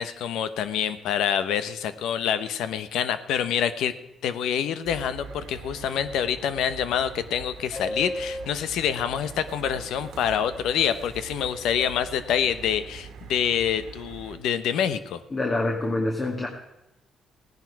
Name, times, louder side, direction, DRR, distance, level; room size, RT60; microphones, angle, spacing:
voice 1, 0.0-3.9 4.2-15.2, left 8 dB, 85° left, 12 dB, 0.9 m, -26 dB
sound 1, 4.8-14.4, right 6 dB, 85° right, 1.6 m, -43 dB
Subway metro underground, 7.7-9.9 10.2-10.3 10.5-10.7 11.0-11.5 11.7-12.7, left 1 dB, 15° left, 0.8 m, -36 dB
voice 2, 15.3-16.5, left 2 dB, 35° left, 1 dB, 2.0 m, -26 dB
17.0 x 10.5 x 4.7 m, 0.94 s
cardioid pair, 90°, 0 cm